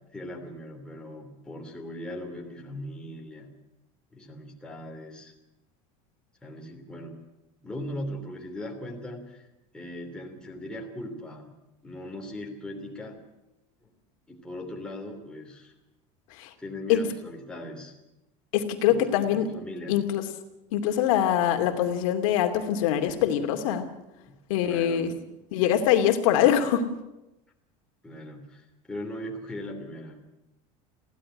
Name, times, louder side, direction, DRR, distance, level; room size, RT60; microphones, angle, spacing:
voice 1, 0.0-3.5 4.1-5.3 6.4-7.2 7.6-9.5 9.7-11.5 11.8-13.2 14.3-15.7 16.6-17.9 18.9-20.0 24.2-24.3 24.6-25.1 28.0-30.2, left 1 dB, 5° left, 1 dB, 3.0 m, -39 dB
voice 2, 18.5-19.5 19.9-20.2 20.7-23.9 24.5-25.1 25.5-26.9, left 10 dB, 80° left, 5 dB, 2.7 m, -23 dB
21.0 x 16.0 x 10.0 m, 0.96 s
cardioid pair, 170°, 17 cm